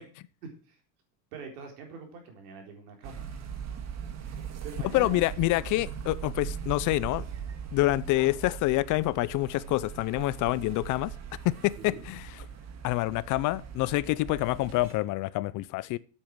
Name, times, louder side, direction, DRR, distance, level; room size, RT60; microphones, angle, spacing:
voice 1, 0.4-0.8 1.3-3.2 4.6-5.2 11.8-12.0, right 4 dB, 90° right, 4.2 m, -43 dB
sound 1, 3.0-14.9, right 7 dB, 35° right, 1.8 m, -40 dB
voice 2, 4.9-7.2 7.7-11.1 11.4-12.3 12.8-16.0, left 18 dB, 45° left, 0.5 m, -27 dB
8.8 x 8.0 x 6.1 m
supercardioid pair, 135°, 44 cm